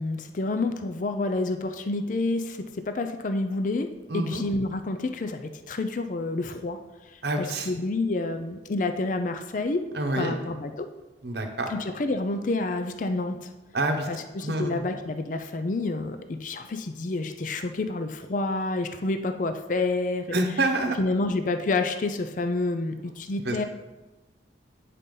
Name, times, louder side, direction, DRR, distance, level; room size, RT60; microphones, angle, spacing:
voice 1, 0.0-3.9 4.1-6.8 7.4-9.9 10.2-10.9 11.7-13.5 14.1-20.4 21.0-23.6, left 2 dB, 45° left, 8 dB, 0.4 m, -29 dB
voice 2, 4.1-4.4 7.2-7.7 9.9-10.3 11.2-11.7 13.7-14.1 14.4-14.8 20.3-21.0 23.5-23.6, right 2 dB, 60° right, 4 dB, 0.9 m, -27 dB
9.1 x 4.1 x 5.3 m, 1.1 s
head